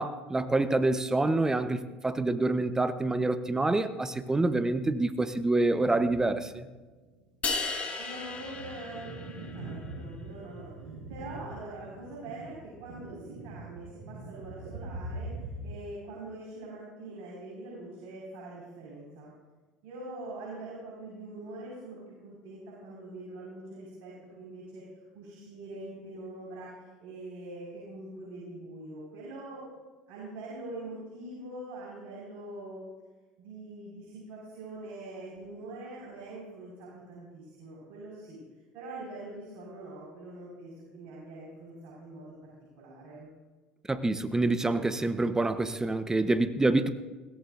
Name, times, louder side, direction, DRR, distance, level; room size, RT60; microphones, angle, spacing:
voice 1, 0.0-6.7 43.9-46.9, right 2 dB, 15° right, 10 dB, 1.1 m, -27 dB
sound 1, 5.7-6.6 7.0-7.1 7.8-15.7, right 2 dB, 85° right, 1.9 m, -43 dB
sound 2, 7.4-9.7, left 4 dB, 35° left, 2.1 m, -35 dB
voice 2, 8.0-19.3 19.8-29.6 30.1-32.8 33.4-38.4 38.7-43.3, right 2 dB, 65° right, -5 dB, 5.5 m, -44 dB
21.0 x 16.5 x 2.7 m, 1.3 s
hypercardioid pair, 75°, 4 cm